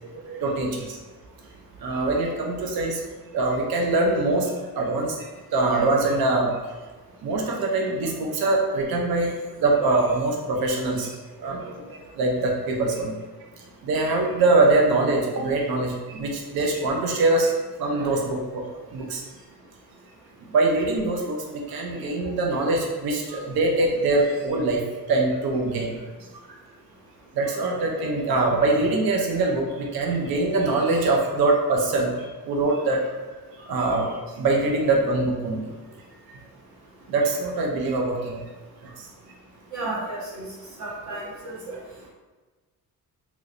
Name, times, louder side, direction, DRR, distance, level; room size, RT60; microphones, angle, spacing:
voice 1, 0.1-1.0 1.8-3.0 3.3-6.5 7.2-9.3 9.6-13.2 13.8-17.5 17.8-19.2 20.5-24.8 25.1-26.0 26.5-26.6 27.3-33.0 33.6-35.7 37.1-38.5 38.8-39.1, right 2 dB, 70° right, 1 dB, 0.6 m, -23 dB
voice 2, 39.7-40.5 40.8-41.8, right 2 dB, 50° right, -5 dB, 1.1 m, -33 dB
3.1 x 3.0 x 2.5 m, 1.3 s
cardioid pair, 130°, 37 cm